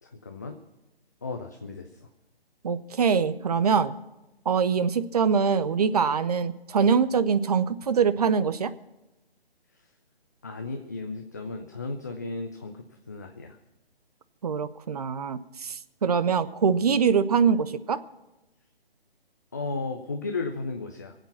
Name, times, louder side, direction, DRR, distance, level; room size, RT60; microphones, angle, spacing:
voice 1, 0.0-0.6 1.2-1.9 10.4-13.6 19.5-21.1, left 3 dB, 20° left, 4 dB, 0.4 m, -34 dB
voice 2, 2.6-3.9 4.5-8.7 14.4-18.0, right 6 dB, 40° right, 13 dB, 0.7 m, -24 dB
23.0 x 8.2 x 5.9 m, 0.99 s
figure-of-eight pair, 145°, 31 cm